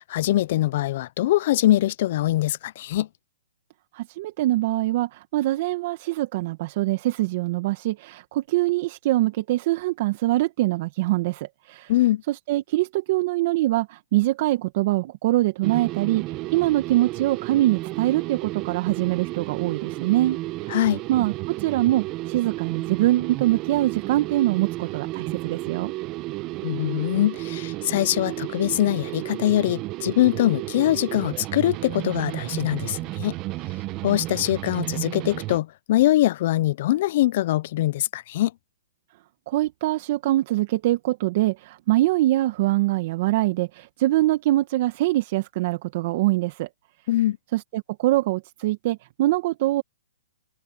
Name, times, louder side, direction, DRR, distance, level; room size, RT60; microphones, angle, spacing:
voice 1, 0.0-3.1 11.9-12.2 20.7-21.0 26.6-33.3 34.0-38.5 47.1-47.4, left 14 dB, 50° left, 0.7 m, -23 dB
voice 2, 3.9-11.9 12.3-20.8 21.1-25.9 39.5-46.7 47.5-49.8, right 16 dB, 45° right, 1.7 m, -23 dB
sound 1, 15.6-35.6, right 19 dB, 30° right, 1.3 m, -32 dB
open air
hypercardioid pair, 140°, 0 cm